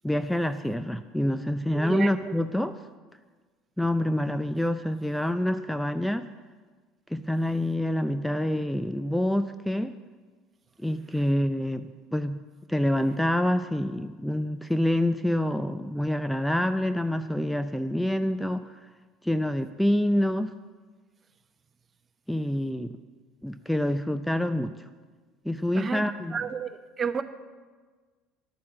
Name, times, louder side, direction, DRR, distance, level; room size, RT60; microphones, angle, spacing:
voice 1, 0.0-2.7 3.8-6.2 7.1-9.9 10.8-12.4 12.7-18.7 19.2-20.5 22.3-23.0 23.4-24.7 25.4-26.4, left 1 dB, 5° left, 10 dB, 0.5 m, -27 dB
voice 2, 1.7-2.3 25.8-26.0 26.3-26.7 27.0-27.2, right 5 dB, 30° right, 10 dB, 0.9 m, -30 dB
11.5 x 8.6 x 7.2 m, 1.4 s
hypercardioid pair, 75°, 0 cm